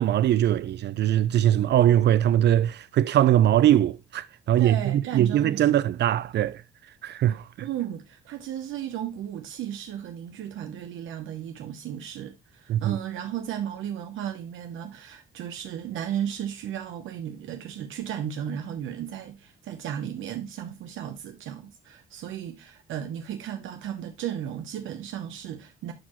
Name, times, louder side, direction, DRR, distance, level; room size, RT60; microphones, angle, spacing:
voice 1, 0.0-6.6 7.0-7.5 12.7-13.0, right 11 dB, 60° right, 0.4 m, -21 dB
voice 2, 4.6-5.7 7.6-25.9, right 10 dB, 80° right, 0.8 m, -34 dB
9.9 x 4.6 x 3.0 m
cardioid pair, 90°, 20 cm